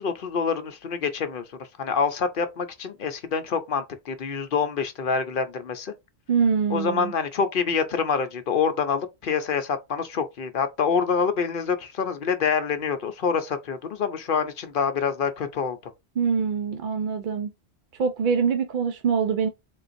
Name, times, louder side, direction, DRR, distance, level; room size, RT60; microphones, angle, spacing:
voice 1, 0.0-1.4 1.8-5.9 6.7-15.8, left 6 dB, 60° left, 0.8 m, -26 dB
voice 2, 6.3-7.1 16.2-17.5 18.0-19.5, right 6 dB, 55° right, 0.7 m, -24 dB
3.9 x 3.7 x 2.5 m
omnidirectional pair, 1.1 m